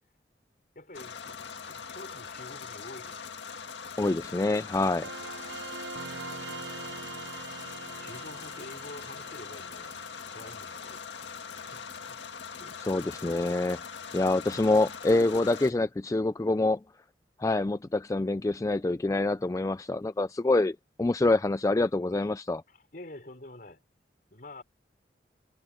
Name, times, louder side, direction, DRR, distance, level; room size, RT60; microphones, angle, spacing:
voice 1, 0.7-3.3 5.2-6.1 7.8-12.2 12.6-12.8 22.7-23.8 24.3-24.6, left 2 dB, 50° left, 4.7 m, -49 dB
sound 1, 0.9-15.7, left 6 dB, 85° left, 1.8 m, -42 dB
voice 2, 4.0-5.1 12.9-13.8 14.1-16.8 17.4-22.6, left 2 dB, 20° left, 0.3 m, -26 dB
sound 2, 5.0-11.7, right 4 dB, 85° right, 0.9 m, -44 dB
head